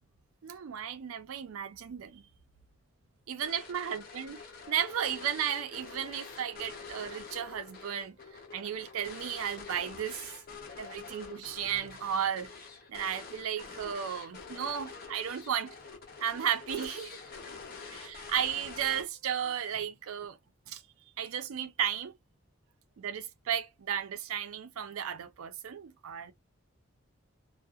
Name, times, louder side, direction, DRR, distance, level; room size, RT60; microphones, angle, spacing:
voice 1, 0.4-2.2 3.3-4.4 4.7-8.1 8.5-10.3 10.8-12.5 12.9-15.8 16.2-17.2 17.9-20.4 20.7-20.8 21.2-22.1 23.0-26.3, right 8 dB, 90° right, 0.4 m, -34 dB
sound 1, 3.4-19.4, left 5 dB, 45° left, 0.7 m, -46 dB
2.7 x 2.0 x 2.3 m
head